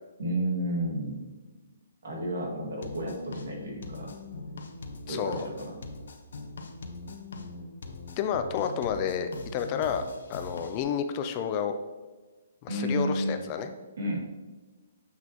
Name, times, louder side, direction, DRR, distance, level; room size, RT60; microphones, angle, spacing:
voice 1, 0.2-1.4 2.0-4.1 5.1-5.7 12.7-13.5 14.0-14.2, equal, 75° right, -1 dB, 2.0 m, -31 dB
sound 1, 2.8-10.8, left 3 dB, 75° left, 0.9 m, -41 dB
voice 2, 5.1-5.5 8.2-10.0 10.3-11.7 12.6-13.7, left 7 dB, 25° left, 8 dB, 0.4 m, -30 dB
7.3 x 6.0 x 2.9 m, 1.2 s
hypercardioid pair, 170°, 0 cm